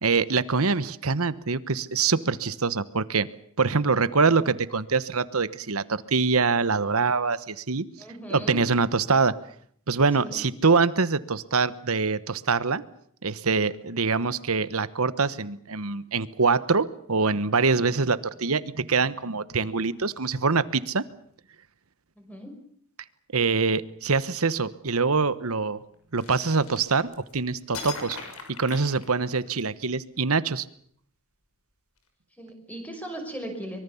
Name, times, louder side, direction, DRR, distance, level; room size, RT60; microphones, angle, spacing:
voice 1, 0.0-3.3 3.6-7.8 8.3-9.3 9.9-12.8 13.2-21.0 23.3-25.8 26.1-28.2 28.6-30.6, right 4 dB, 80° right, 15 dB, 1.2 m, -24 dB
voice 2, 8.0-8.6 10.2-10.4 22.2-22.6 32.4-33.8, right 1 dB, 5° left, 4 dB, 6.0 m, -38 dB
sound 1, 26.2-27.3 27.7-29.6, left 4 dB, 85° left, 6.3 m, -39 dB
24.5 x 23.0 x 7.1 m, 0.62 s
head